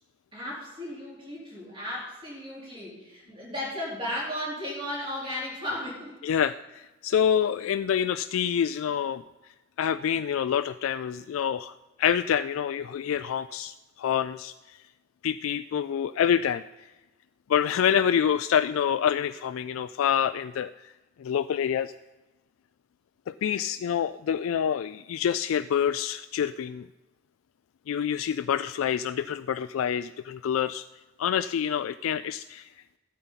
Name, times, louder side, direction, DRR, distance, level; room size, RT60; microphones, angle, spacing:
voice 1, 0.3-6.2 6.4-6.5, left 1 dB, 25° right, -6 dB, 4.1 m, -35 dB
voice 2, 6.2-9.2 9.8-14.8 15.2-16.6 17.5-20.9 21.2-21.9 23.3-26.9 27.9-30.8 31.2-32.7, left 8 dB, 90° left, 10 dB, 0.3 m, -27 dB
15.5 x 12.5 x 4.1 m, 1.1 s
head